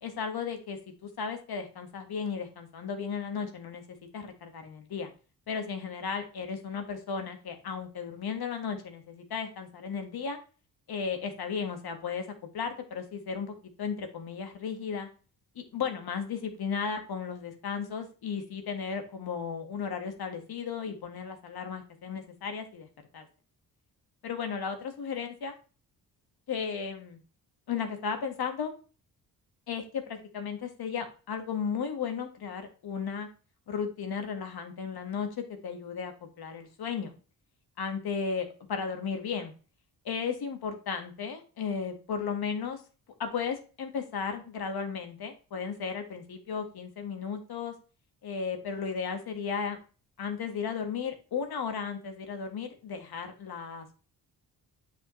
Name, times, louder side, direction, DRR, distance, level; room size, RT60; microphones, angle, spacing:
voice 1, 0.0-5.1 5.5-10.4 10.9-12.2 12.5-15.1 15.5-22.9 23.1-23.3 24.2-25.5 26.5-27.2 27.7-28.7 29.7-33.3 33.7-37.1 37.8-39.5 40.0-42.8 43.2-47.7 48.2-49.8 50.2-53.9, left 6 dB, 65° left, 6 dB, 1.8 m, -35 dB
8.7 x 5.8 x 3.2 m, 0.36 s
cardioid pair, 105°, 40 cm